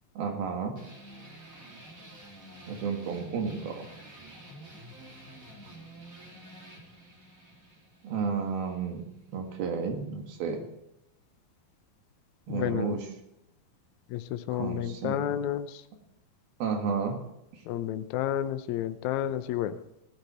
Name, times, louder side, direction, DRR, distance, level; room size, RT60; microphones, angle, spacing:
voice 1, 0.2-0.8 2.7-3.9 8.0-9.1 9.3-10.7 12.5-13.1 14.5-15.3 16.6-17.2 17.5-17.6, right 5 dB, 80° right, 4 dB, 3.7 m, -32 dB
sound 1, 0.8-9.8, right 1 dB, 25° right, 2.8 m, -49 dB
voice 2, 12.5-13.0 14.1-15.8 17.7-19.8, left 11 dB, 85° left, 10 dB, 1.6 m, -31 dB
16.5 x 12.0 x 4.3 m, 0.84 s
omnidirectional pair, 4.2 m